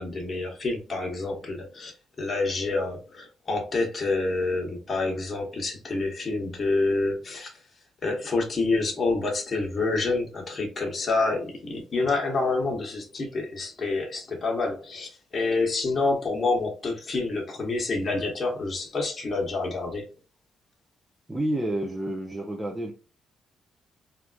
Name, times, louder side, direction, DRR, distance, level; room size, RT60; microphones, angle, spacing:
voice 1, 0.0-7.5 8.0-20.0, left 3 dB, 35° left, 1.0 m, -28 dB
voice 2, 21.3-22.9, right 1 dB, 15° right, 0.6 m, -29 dB
3.2 x 2.4 x 2.2 m
cardioid pair, 90°, 0 cm